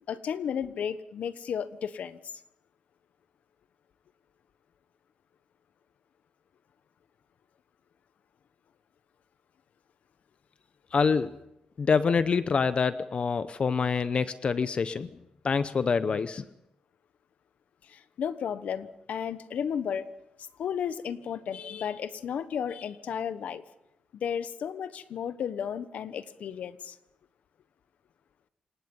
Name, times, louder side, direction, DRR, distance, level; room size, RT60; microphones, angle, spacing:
voice 1, 0.1-2.4 17.8-20.0 20.6-23.6 24.1-27.0, left 8 dB, 75° left, 13 dB, 1.2 m, -33 dB
voice 2, 10.9-11.3 11.8-15.1 15.4-16.4, left 5 dB, 45° left, 13 dB, 0.7 m, -26 dB
27.5 x 18.5 x 5.5 m, 0.85 s
cardioid pair, 105°, 3 cm